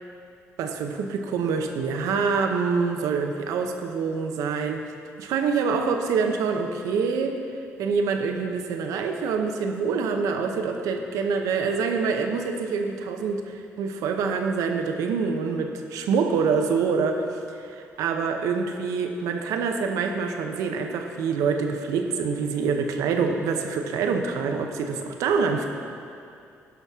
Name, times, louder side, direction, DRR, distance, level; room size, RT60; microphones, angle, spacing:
voice 1, 0.6-4.8 5.2-7.4 7.8-25.7, right 5 dB, 90° right, 4 dB, 0.7 m, -26 dB
17.0 x 5.9 x 3.6 m, 2.5 s
cardioid pair, 85°, 6 cm